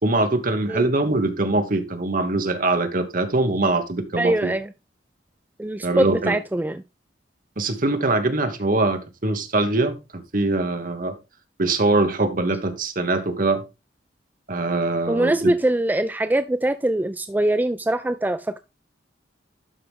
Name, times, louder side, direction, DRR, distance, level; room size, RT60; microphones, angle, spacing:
voice 1, 0.0-4.5 5.8-6.3 7.6-11.1 11.6-13.6 14.5-15.5, right 2 dB, 50° right, 1.4 m, -23 dB
voice 2, 4.2-4.7 5.6-6.8 15.1-18.6, right 1 dB, 10° right, 0.3 m, -23 dB
12.0 x 4.9 x 3.5 m
head